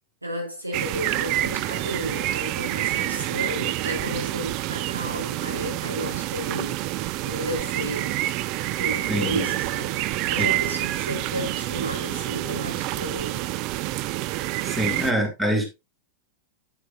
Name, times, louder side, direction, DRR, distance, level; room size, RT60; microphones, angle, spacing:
voice 1, 0.2-8.2 8.7-10.0 10.3-13.5 15.1-15.7, right 1 dB, 85° right, 3.8 m, -33 dB
sound 1, 0.7-15.1, right 16 dB, 40° right, 0.5 m, -28 dB
voice 2, 9.1-9.5 10.4-10.6 14.6-15.6, right 1 dB, 10° right, 2.7 m, -25 dB
10.0 x 7.9 x 2.5 m
figure-of-eight pair, 90°, 0 cm